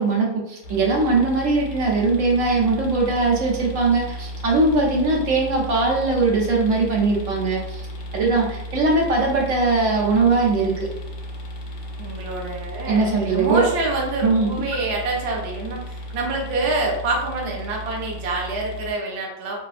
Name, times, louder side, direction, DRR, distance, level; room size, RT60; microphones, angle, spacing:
voice 1, 0.0-7.9 8.1-10.9 12.9-13.6 14.2-14.5, right 3 dB, 85° right, -2 dB, 1.1 m, -20 dB
sound 1, 0.6-18.9, equal, 70° left, 0.9 m, -34 dB
voice 2, 12.0-19.6, right 2 dB, 60° right, -1 dB, 0.8 m, -26 dB
2.7 x 2.3 x 2.4 m, 0.85 s
omnidirectional pair, 1.3 m